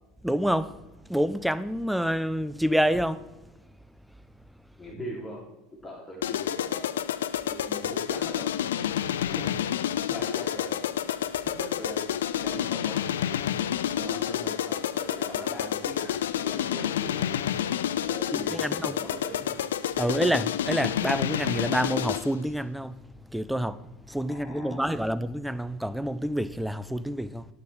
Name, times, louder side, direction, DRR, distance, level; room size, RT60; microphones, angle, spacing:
voice 1, 0.2-0.7 1.1-3.3 18.3-18.9 20.0-23.0 23.3-27.5, equal, ahead, 0.5 m, -28 dB
voice 2, 4.8-5.4 5.8-6.9 7.5-8.5 9.4-9.5 10.1-11.0 11.6-12.1 12.4-13.0 13.9-17.4 18.0-19.6 24.3-25.1, equal, 30° left, 3.3 m, -40 dB
sound 1, 6.2-22.4, left 10 dB, 85° left, 0.3 m, -29 dB
9.4 x 9.3 x 3.5 m
hypercardioid pair, 80°, 0 cm